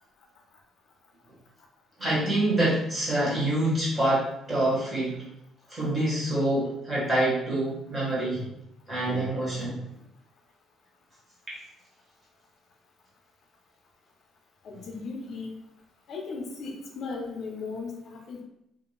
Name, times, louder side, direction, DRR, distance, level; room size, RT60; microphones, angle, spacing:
voice 1, 2.0-5.1 5.7-8.4 8.9-9.8 11.5-11.6, right 1 dB, 15° right, -7 dB, 1.0 m, -26 dB
voice 2, 14.6-15.6 16.1-18.4, left 4 dB, 45° left, 0 dB, 0.6 m, -36 dB
2.4 x 2.2 x 3.0 m, 0.78 s
cardioid pair, 175°, 0 cm